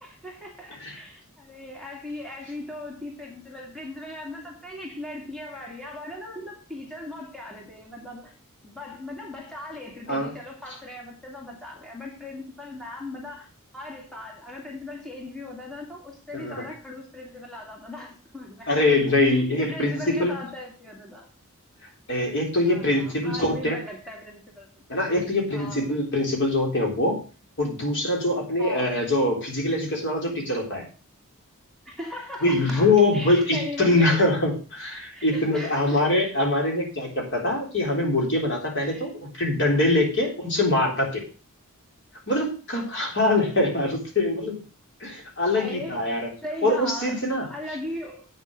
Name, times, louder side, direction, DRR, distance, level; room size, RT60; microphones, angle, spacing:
voice 1, 0.0-8.3 8.6-18.7 19.2-21.3 22.7-24.7 25.5-25.9 28.6-28.9 31.9-34.2 35.1-36.0 36.7-36.8 38.9-39.1 45.6-48.3, left 2 dB, ahead, -1 dB, 2.4 m, -38 dB
voice 2, 16.3-16.7 18.7-20.4 22.1-23.8 24.9-27.2 27.6-30.9 32.4-41.2 42.3-44.6 45.0-46.3 46.6-47.8, left 2 dB, 55° left, 0 dB, 3.7 m, -23 dB
8.6 x 7.2 x 6.4 m, 0.36 s
head